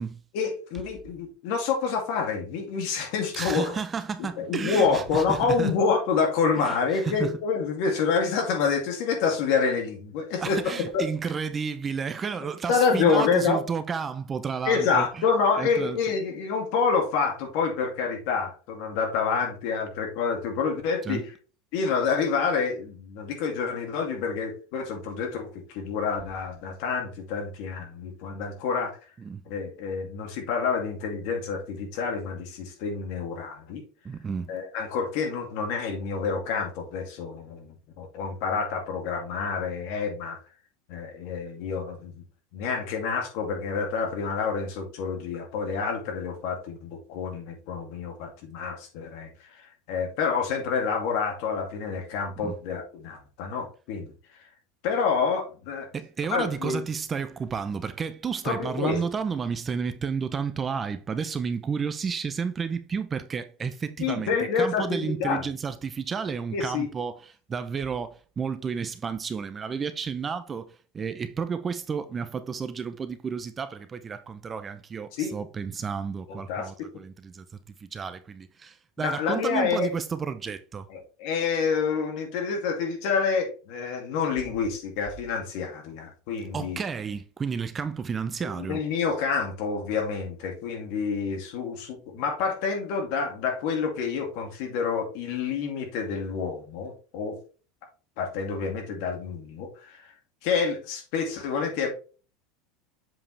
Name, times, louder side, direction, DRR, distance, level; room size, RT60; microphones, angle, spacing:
voice 1, 0.3-3.7 4.4-10.6 10.9-11.1 12.7-13.6 14.7-21.3 21.7-28.9 29.5-33.8 34.5-40.4 40.9-42.2 42.5-49.3 49.6-54.1 54.8-55.9 56.3-56.8 58.4-59.0 64.0-65.5 66.5-66.9 75.2-75.3 76.3-76.7 79.0-79.9 80.9-86.8 88.6-97.4 98.2-100.1 100.4-101.9, left 5 dB, 60° left, 2.3 m, -28 dB
voice 2, 3.3-5.7 6.5-7.4 10.4-16.1 21.0-21.3 29.2-29.4 34.0-34.5 52.4-52.6 55.9-77.5 77.8-80.9 86.5-88.9, right 6 dB, 20° right, 0.5 m, -32 dB
7.5 x 4.9 x 3.2 m
supercardioid pair, 150°, 0 cm